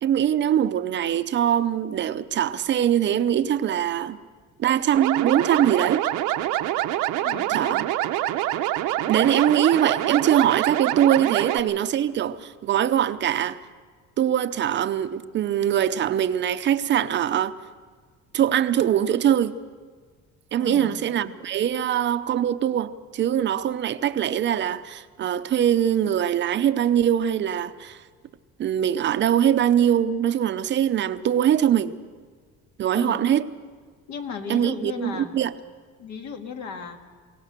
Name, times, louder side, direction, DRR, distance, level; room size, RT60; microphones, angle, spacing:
voice 1, 0.0-4.2 4.6-6.0 7.5-7.9 9.1-13.6 14.2-17.5 18.3-19.5 20.5-28.0 28.6-32.0 32.8-33.5 34.5-35.5, right 10 dB, 35° right, 0.6 m, -22 dB
sound 1, 4.9-11.6, right 14 dB, 85° right, 0.9 m, -25 dB
voice 2, 7.2-7.8 11.2-11.4 20.6-21.0 32.9-33.3 34.1-35.4 36.0-37.0, left 6 dB, 65° left, 2.0 m, -36 dB
23.0 x 17.5 x 6.7 m
cardioid pair, 160°, 30 cm